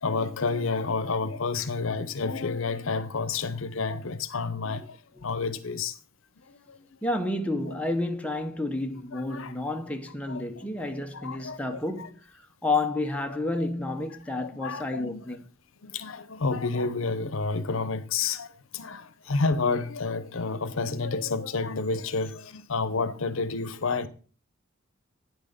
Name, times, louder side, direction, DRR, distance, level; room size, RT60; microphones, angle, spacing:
voice 1, 0.0-5.0 5.2-6.0 6.7-6.8 9.1-9.5 10.3-12.1 13.6-13.7 14.3-15.2 15.8-24.1, left 4 dB, 70° left, 0.8 m, -30 dB
voice 2, 7.0-15.4, left 2 dB, 5° left, 0.8 m, -30 dB
9.4 x 6.3 x 5.0 m
head